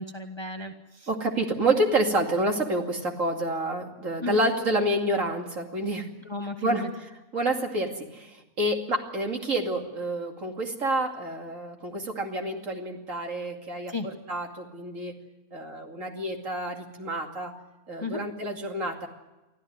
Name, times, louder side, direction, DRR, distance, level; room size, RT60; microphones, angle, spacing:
voice 1, 0.0-1.1 4.2-4.4 6.2-6.9 13.9-14.1 18.0-18.2, left 3 dB, 20° left, 6 dB, 1.3 m, -34 dB
voice 2, 1.1-6.1 6.6-15.1 15.5-17.5 17.9-19.1, right 1 dB, 60° right, 2 dB, 2.9 m, -28 dB
24.5 x 14.5 x 9.5 m, 1.1 s
omnidirectional pair, 1.6 m